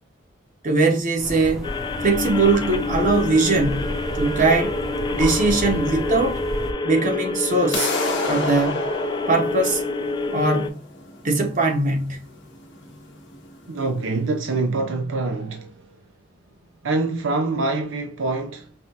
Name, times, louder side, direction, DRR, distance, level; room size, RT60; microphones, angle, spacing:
voice 1, 0.6-1.7 2.0-4.8 5.2-6.4 6.8-7.9 8.3-8.9 9.3-9.8 10.3-10.8 11.2-12.2, right 3 dB, 45° right, 0.8 m, -21 dB
sound 1, 1.2-6.7, equal, 5° right, 0.7 m, -32 dB
sound 2, 1.6-10.7, left 3 dB, 25° left, 0.4 m, -27 dB
sound 3, 7.7-13.7, left 3 dB, 70° left, 1.2 m, -30 dB
voice 2, 13.7-16.0 16.8-18.7, right 3 dB, 90° right, 0.5 m, -25 dB
5.4 x 2.4 x 2.7 m
head